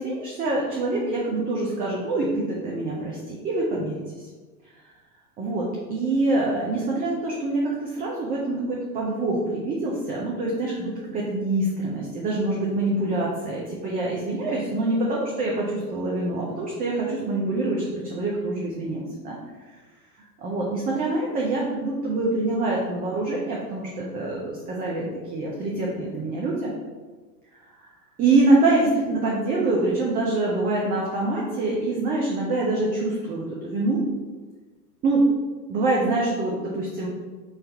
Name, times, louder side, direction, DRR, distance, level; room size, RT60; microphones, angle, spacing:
voice 1, 0.0-4.3 5.4-19.4 20.4-26.7 27.8-27.9 28.2-34.0 35.0-35.3 35.7-37.1, right 2 dB, 20° right, -3 dB, 0.5 m, -25 dB
4.0 x 2.6 x 4.4 m, 1.3 s
hypercardioid pair, 100°, 50 cm